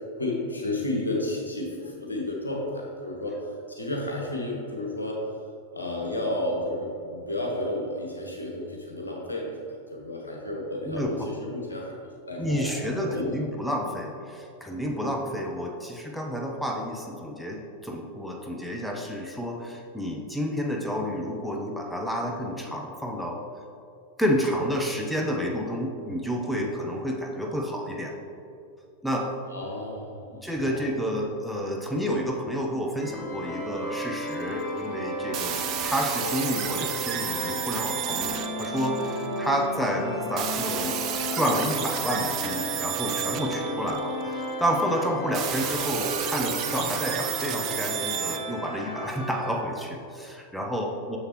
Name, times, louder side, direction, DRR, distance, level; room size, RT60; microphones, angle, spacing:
voice 1, 0.2-3.3 3.7-5.2 5.7-11.9 12.3-13.4 14.9-15.1 26.5-26.7 29.5-30.9, left 1 dB, 80° left, -2 dB, 1.2 m, -32 dB
voice 2, 10.9-11.3 12.4-23.4 24.2-28.1 29.0-29.3 30.4-40.9 41.3-51.2, equal, ahead, 0 dB, 0.7 m, -30 dB
sound 1, 33.0-49.5, equal, 25° left, 1.3 m, -34 dB
sound 2, 34.2-34.6 35.3-39.5 40.4-44.5 45.3-48.5, right 10 dB, 35° right, 0.4 m, -32 dB
6.7 x 6.6 x 3.0 m, 2.6 s
figure-of-eight pair, 90°, 0 cm